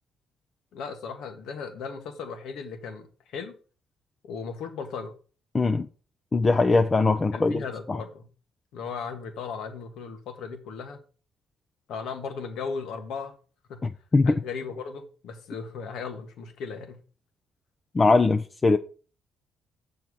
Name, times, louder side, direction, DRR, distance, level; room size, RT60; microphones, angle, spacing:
voice 1, 0.7-3.6 4.2-5.1 7.3-8.3 8.7-11.0 11.9-13.3 13.7-13.8 14.2-17.0, left 5 dB, 75° left, 1.6 m, -36 dB
voice 2, 5.5-5.9 6.3-7.6 7.9-8.0 14.1-14.3 17.9-18.8, left 3 dB, 30° left, 0.6 m, -21 dB
7.1 x 4.6 x 6.4 m
supercardioid pair, 70°, 0 cm